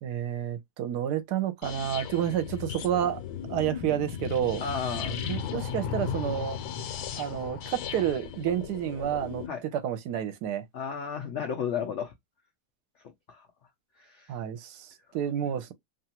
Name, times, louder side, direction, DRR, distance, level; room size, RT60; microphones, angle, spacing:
voice 1, 0.0-3.2 3.5-4.6 5.3-6.6 7.2-10.6 14.3-15.7, right 10 dB, 80° right, 1.2 m, -30 dB
sound 1, 1.6-9.5, left 7 dB, 85° left, 1.2 m, -36 dB
voice 2, 4.6-5.2 9.5-9.6 10.7-12.1 13.3-13.5 14.0-14.3, left 7 dB, 65° left, 0.8 m, -33 dB
2.9 x 2.4 x 2.8 m
omnidirectional pair, 1.7 m